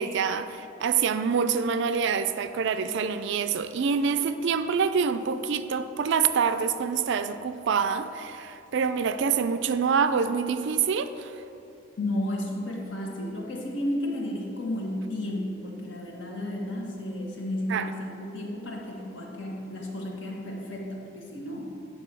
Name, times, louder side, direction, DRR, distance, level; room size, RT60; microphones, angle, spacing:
voice 1, 0.0-11.4 17.7-17.9, right 6 dB, 65° right, 11 dB, 0.4 m, -26 dB
voice 2, 12.0-21.7, left 1 dB, 65° left, -1 dB, 1.4 m, -33 dB
8.9 x 3.9 x 6.0 m, 2.8 s
head